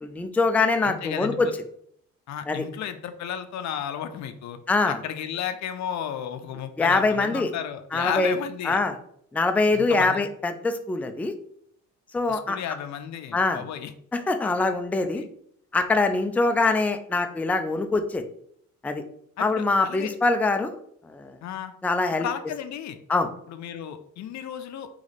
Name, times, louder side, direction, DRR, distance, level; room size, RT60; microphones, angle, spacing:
voice 1, 0.0-1.5 2.5-2.6 4.7-5.0 6.8-7.5 7.9-8.3 8.6-8.9 9.3-11.3 12.1-12.6 13.3-13.6 14.1-15.2 15.7-18.2 18.8-19.0 19.4-20.7 21.1-21.4 21.8-22.3 23.1-23.3, left 3 dB, 5° left, 6 dB, 0.3 m, -23 dB
voice 2, 0.8-1.5 2.3-4.6 4.9-8.8 9.7-10.2 12.3-13.9 15.2-15.3 19.4-20.1 21.4-21.7 22.2-23.0 23.5-24.9, left 9 dB, 65° left, 9 dB, 0.5 m, -33 dB
3.2 x 3.1 x 3.9 m, 0.67 s
cardioid pair, 90°, 30 cm